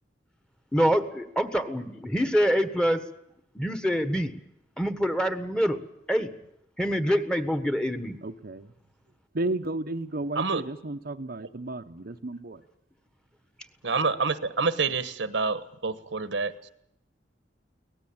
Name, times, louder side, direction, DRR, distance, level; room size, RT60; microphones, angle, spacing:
voice 1, 0.7-3.0 3.5-4.3 4.8-5.8 6.1-6.3 6.8-8.2, equal, 5° left, 10 dB, 1.5 m, -25 dB
voice 2, 8.2-8.7 9.3-12.6, right 2 dB, 55° right, 4 dB, 0.9 m, -33 dB
voice 3, 13.8-16.5, right 4 dB, 75° right, 13 dB, 1.3 m, -27 dB
24.0 x 18.5 x 8.8 m, 0.81 s
head